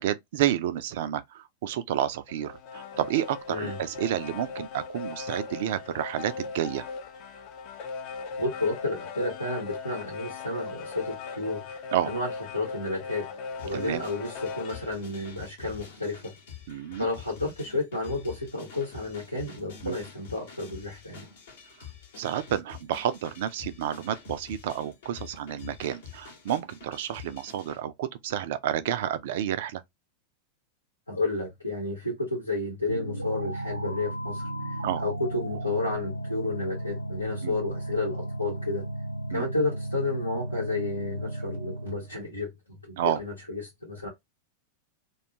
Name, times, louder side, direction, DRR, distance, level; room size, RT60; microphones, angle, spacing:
voice 1, 0.0-6.9 11.9-12.1 13.7-14.0 16.7-17.1 19.8-20.0 22.2-29.8 34.8-35.0 37.4-37.6 39.3-39.5 43.0-43.2, right 11 dB, 55° right, 0.3 m, -30 dB
sound 1, 2.3-14.9, left 5 dB, 40° left, 0.5 m, -39 dB
voice 2, 3.5-3.8 8.4-13.3 13.6-16.4 17.0-21.2 31.1-34.7 35.0-38.8 39.3-44.1, left 2 dB, 85° left, 0.9 m, -31 dB
sound 2, 13.6-27.8, left 7 dB, 60° left, 0.9 m, -47 dB
sound 3, 32.9-42.1, right 1 dB, 90° right, 0.6 m, -34 dB
2.4 x 2.3 x 2.8 m
figure-of-eight pair, 90°, 0 cm